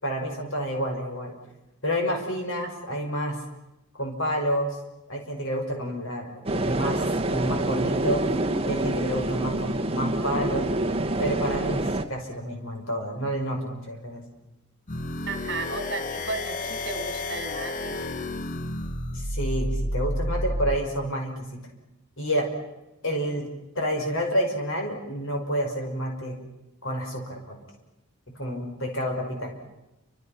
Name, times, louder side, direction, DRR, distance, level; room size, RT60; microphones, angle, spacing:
voice 1, 0.0-1.3 1.8-3.4 4.0-4.8 5.1-7.0 7.3-8.2 8.6-10.7 11.2-14.2 19.1-21.6 22.2-22.5 23.0-23.5 23.7-26.4 26.8-27.6 28.4-29.5, equal, 65° left, 2 dB, 5.8 m, -29 dB
sound 1, 6.5-12.0, right 1 dB, 25° right, 1.3 m, -26 dB
sound 2, 14.9-20.8, left 1 dB, 35° left, 1.0 m, -31 dB
voice 2, 15.3-18.0, right 3 dB, 50° right, 7 dB, 3.0 m, -34 dB
29.0 x 26.5 x 5.9 m, 0.95 s
head